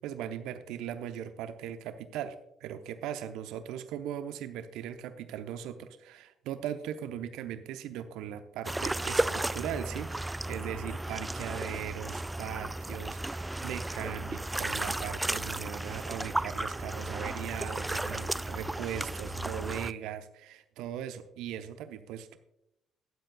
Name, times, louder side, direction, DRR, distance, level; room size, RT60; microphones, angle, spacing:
voice 1, 0.0-2.3 2.6-22.4, right 10 dB, 70° right, 10 dB, 0.7 m, -39 dB
sound 1, 8.6-19.9, right 1 dB, 15° right, 0.3 m, -34 dB
19.5 x 7.6 x 2.3 m, 0.82 s
hypercardioid pair, 50°, 0 cm